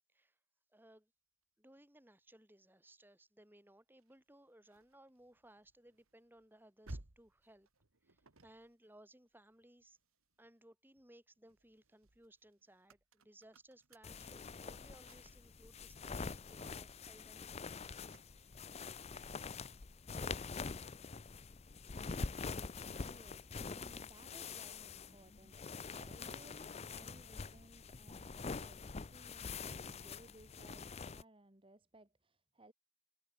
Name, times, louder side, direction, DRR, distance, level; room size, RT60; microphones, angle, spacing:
voice 1, 0.7-1.1 1.6-7.7 8.0-10.0 10.4-18.0, right 1 dB, 10° right, 2.8 m, -63 dB
sound 1, 4.0-10.5 11.0-20.8, right 1 dB, 85° right, 2.1 m, -60 dB
sound 2, 14.0-31.2, left 4 dB, 30° left, 0.5 m, -45 dB
voice 2, 23.0-32.7, right 1 dB, 25° right, 1.8 m, -62 dB
head